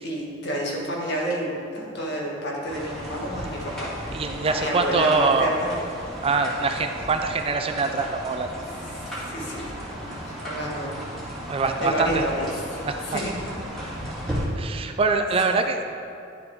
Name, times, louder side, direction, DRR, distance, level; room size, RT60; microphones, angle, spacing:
voice 1, 0.0-5.7 9.3-10.9 11.8-12.8 13.1-13.3, equal, 60° left, -3 dB, 1.7 m, -30 dB
sound 1, 2.7-14.5, equal, ahead, 2.2 m, -35 dB
voice 2, 4.1-5.6 6.2-8.5 11.5-12.2 12.8-13.2 14.6-15.8, right 4 dB, 30° right, 6 dB, 0.4 m, -24 dB
11.0 x 6.7 x 3.6 m, 2.5 s
head